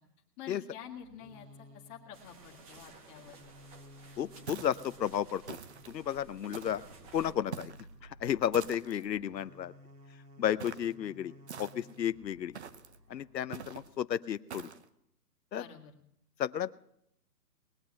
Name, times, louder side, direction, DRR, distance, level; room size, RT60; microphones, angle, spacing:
voice 1, 0.4-3.3 15.5-15.9, left 8 dB, 20° left, 0 dB, 1.7 m, -48 dB
sound 1, 0.8-13.9, equal, 75° right, 2.7 m, -56 dB
sound 2, 2.1-7.3, right 3 dB, 20° right, 1.3 m, -55 dB
voice 2, 4.2-5.6 5.9-6.8 7.1-7.7 8.2-9.7 10.4-12.5 13.1-14.7 15.5-15.6 16.4-16.7, left 10 dB, 90° left, 14 dB, 0.7 m, -33 dB
sound 3, 4.5-4.9 5.5-6.0 6.5-6.9 7.5-7.9 8.5-9.1 10.6-10.9 11.5-12.0 12.5-13.0 13.5-13.9 14.5-14.8, right 7 dB, 45° right, 0.9 m, -45 dB
20.0 x 8.1 x 8.7 m, 0.77 s
hypercardioid pair, 155°, 49 cm